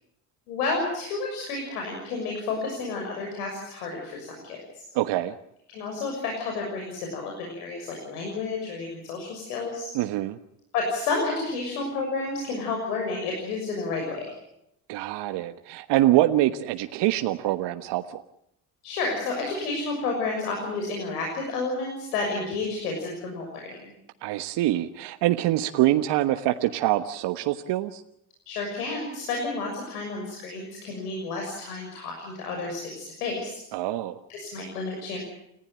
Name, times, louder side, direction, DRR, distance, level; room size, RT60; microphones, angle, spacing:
voice 1, 0.5-4.8 5.7-9.9 10.7-14.3 18.8-23.9 28.5-33.6 34.3-35.2, left 3 dB, 85° left, 1 dB, 6.7 m, -31 dB
voice 2, 4.9-5.3 9.9-10.4 14.9-18.2 24.2-28.0 33.7-34.2, right 14 dB, 65° right, 8 dB, 1.4 m, -25 dB
29.5 x 16.0 x 9.0 m, 0.80 s
hypercardioid pair, 65°, 45 cm